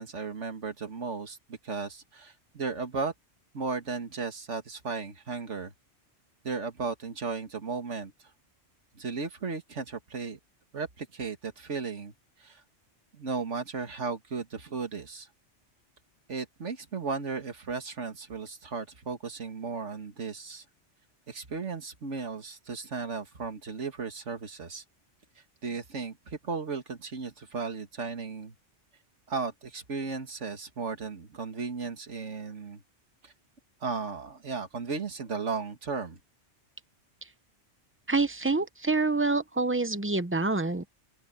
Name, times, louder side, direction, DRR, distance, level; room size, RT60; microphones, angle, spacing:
voice 1, 0.0-3.1 3.5-5.7 6.4-8.1 9.0-10.4 10.7-12.1 12.4-12.6 13.1-15.3 16.3-20.6 21.3-24.8 25.6-28.5 29.3-32.8 33.2-33.3 33.8-36.2, right 4 dB, 75° right, 2.3 m, -35 dB
voice 2, 38.1-40.9, right 3 dB, 10° right, 0.7 m, -27 dB
open air
omnidirectional pair, 1.2 m